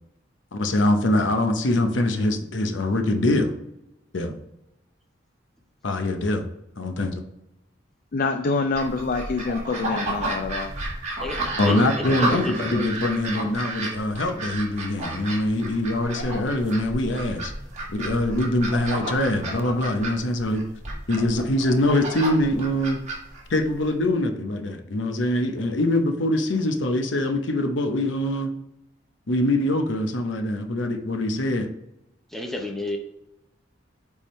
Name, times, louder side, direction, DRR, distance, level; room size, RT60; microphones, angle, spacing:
voice 1, 0.5-3.5 4.1-4.4 5.8-6.5 6.8-7.2 11.6-17.5 17.9-20.6 21.1-23.0 23.5-28.5 29.3-31.7, left 1 dB, 85° left, 6 dB, 0.8 m, -23 dB
voice 2, 8.1-10.7, left 3 dB, 50° left, 7 dB, 0.4 m, -26 dB
sound 1, 8.7-23.9, right 2 dB, 40° right, 1.7 m, -32 dB
voice 3, 11.2-12.8 32.3-33.0, left 2 dB, ahead, 1 dB, 0.8 m, -31 dB
8.5 x 3.6 x 3.1 m, 0.85 s
head